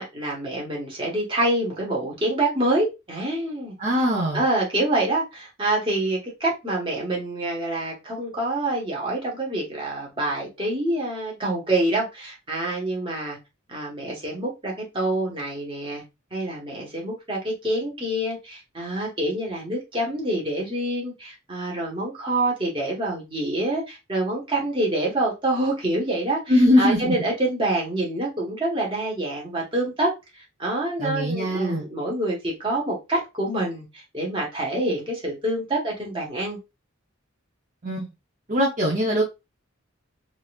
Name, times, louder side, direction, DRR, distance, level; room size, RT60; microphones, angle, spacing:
voice 1, 0.0-3.7 4.3-13.4 13.7-16.0 16.3-36.6, right 1 dB, 25° right, -3 dB, 1.2 m, -26 dB
voice 2, 3.8-4.4 26.5-27.1 31.0-31.8 37.8-38.1 38.5-39.2, left 1 dB, 40° right, -4 dB, 0.7 m, -21 dB
4.0 x 2.6 x 2.3 m, 0.24 s
head